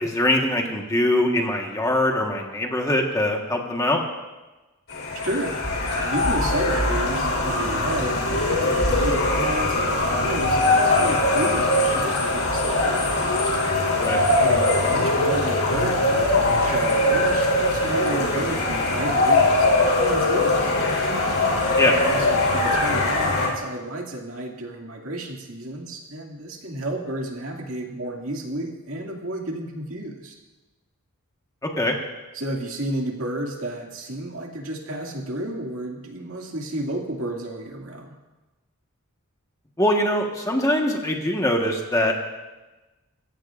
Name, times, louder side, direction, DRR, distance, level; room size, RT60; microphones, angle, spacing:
voice 1, 0.0-4.0 14.0-14.2 21.8-22.0 31.6-31.9 39.8-42.3, left 1 dB, 15° left, 1 dB, 1.4 m, -22 dB
sound 1, 4.9-23.5, left 2 dB, 70° left, 3.5 m, -21 dB
voice 2, 5.1-5.6 6.0-13.3 14.0-20.7 22.0-30.4 32.3-38.1, right 1 dB, 65° right, 0 dB, 2.3 m, -32 dB
24.0 x 16.0 x 2.5 m, 1.1 s
head